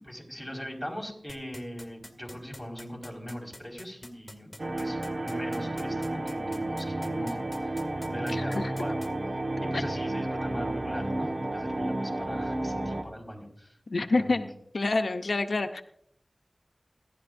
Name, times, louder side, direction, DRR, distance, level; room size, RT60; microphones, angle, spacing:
voice 1, 0.0-4.5 4.8-9.0 9.6-13.7 14.2-14.4, equal, ahead, -1 dB, 4.9 m, -40 dB
sound 1, 1.3-9.1, left 1 dB, 25° left, 2.2 m, -46 dB
sound 2, 4.6-13.0, right 1 dB, 70° right, 1.4 m, -32 dB
voice 2, 8.3-8.7 13.9-15.8, left 3 dB, 85° left, 6 dB, 0.7 m, -28 dB
29.0 x 11.5 x 2.6 m, 0.70 s
wide cardioid pair, 45°, 0 cm